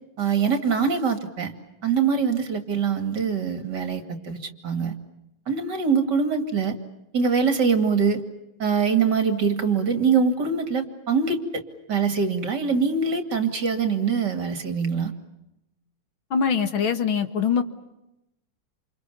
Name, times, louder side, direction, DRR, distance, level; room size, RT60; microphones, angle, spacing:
voice 1, 0.2-1.5 1.8-5.0 5.5-6.8 7.1-8.2 8.6-11.6 11.9-15.1, right 5 dB, 55° right, 8 dB, 3.1 m, -23 dB
voice 2, 16.3-17.6, left 6 dB, 75° left, 9 dB, 2.7 m, -23 dB
29.0 x 28.0 x 7.0 m, 0.90 s
omnidirectional pair, 2.2 m